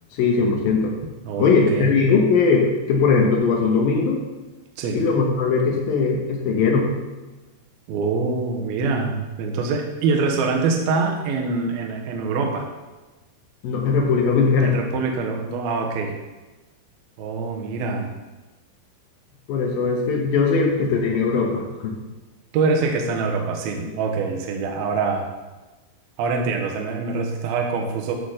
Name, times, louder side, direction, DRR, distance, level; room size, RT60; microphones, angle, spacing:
voice 1, 0.1-0.9 1.4-4.2 4.9-6.9 13.6-14.7 19.5-21.9, left 4 dB, 70° left, 0 dB, 2.3 m, -20 dB
voice 2, 1.3-1.9 4.8-5.0 7.9-12.7 14.6-16.2 17.2-18.1 22.5-25.3 26.2-28.1, right 4 dB, 75° right, 1 dB, 2.3 m, -24 dB
11.0 x 3.9 x 6.4 m, 1.2 s
omnidirectional pair, 5.4 m